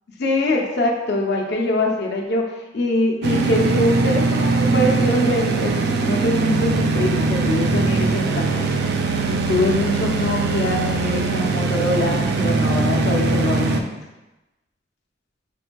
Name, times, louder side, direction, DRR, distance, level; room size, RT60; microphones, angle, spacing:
voice 1, 0.2-8.7 9.3-13.9, left 1 dB, 60° left, 0 dB, 0.6 m, -23 dB
sound 1, 3.2-13.8, right 3 dB, 60° right, 0.3 m, -21 dB
6.0 x 2.5 x 2.2 m, 1.0 s
head